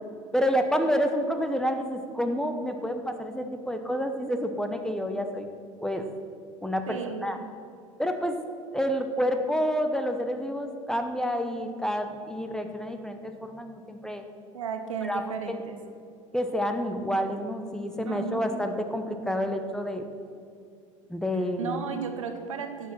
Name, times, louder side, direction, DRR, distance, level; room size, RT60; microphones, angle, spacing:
voice 1, 0.3-5.5 5.8-6.1 6.6-7.4 8.0-8.4 8.7-14.2 15.0-15.6 16.3-20.0 21.1-21.8, equal, 5° left, 6 dB, 1.1 m, -29 dB
voice 2, 6.9-7.5 14.5-15.8 18.1-18.4 21.6-22.9, right 6 dB, 75° right, 7 dB, 1.1 m, -34 dB
11.5 x 7.6 x 6.1 m, 2.4 s
figure-of-eight pair, 70°, 17 cm